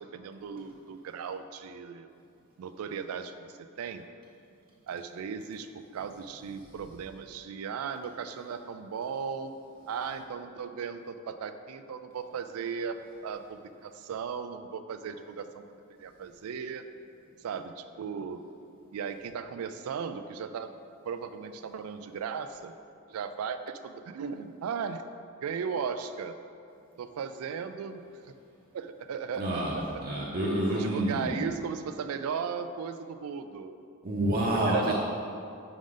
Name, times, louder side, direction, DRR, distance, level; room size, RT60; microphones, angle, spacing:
voice 1, 0.0-2.1 2.6-4.1 4.9-5.7 5.9-9.5 9.9-15.6 16.0-16.8 17.4-18.4 18.9-20.7 21.0-22.8 23.1-25.0 25.4-26.4 27.0-28.0 28.7-30.0 30.7-33.8 34.5-34.9, right 6 dB, 80° right, 10 dB, 0.3 m, -36 dB
voice 2, 29.4-29.8 30.0-31.4 34.0-34.9, right 1 dB, 40° right, -5 dB, 0.7 m, -28 dB
5.2 x 4.9 x 3.8 m, 2.5 s
head